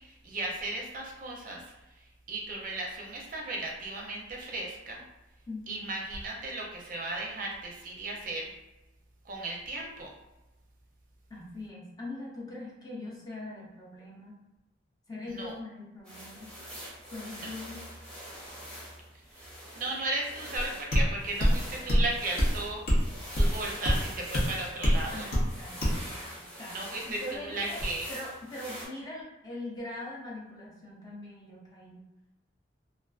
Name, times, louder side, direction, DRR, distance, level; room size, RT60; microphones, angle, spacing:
voice 1, 0.0-1.7 2.3-5.0 5.7-8.5 9.3-10.1 15.3-15.6 17.3-17.5 19.4-19.5 19.7-22.8 23.3-25.3 26.7-28.1, right 2 dB, 45° right, -1 dB, 0.5 m, -35 dB
voice 2, 11.3-14.4 15.1-16.6 17.1-17.8 25.1-25.8 26.3-26.8 27.1-27.8 28.1-32.1, left 2 dB, 20° left, -5 dB, 0.5 m, -41 dB
sound 1, 16.0-28.9, equal, 5° left, 0.9 m, -44 dB
sound 2, 20.6-20.7 20.9-21.1 21.4-21.6 21.9-22.1 22.4-22.5 22.9-23.0 23.4-23.5 23.8-24.0 24.3-24.5 24.8-25.0 25.3-25.5 25.8-26.0, equal, 55° left, 0.7 m, -23 dB
2.4 x 2.3 x 2.3 m, 1.0 s
head